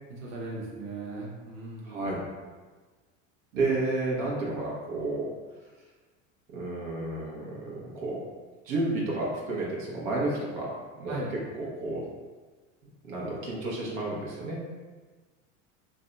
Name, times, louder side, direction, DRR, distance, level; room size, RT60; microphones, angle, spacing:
voice 1, 0.2-2.0 11.1-11.3, right 2 dB, 45° right, -3 dB, 0.9 m, -37 dB
voice 2, 1.8-2.2 3.5-5.3 6.5-8.2 8.6-10.7 11.0-11.2 11.5-12.0 13.0-14.7, right 2 dB, 80° right, -4 dB, 0.9 m, -31 dB
2.6 x 2.2 x 3.7 m, 1.3 s
hypercardioid pair, 95°, 39 cm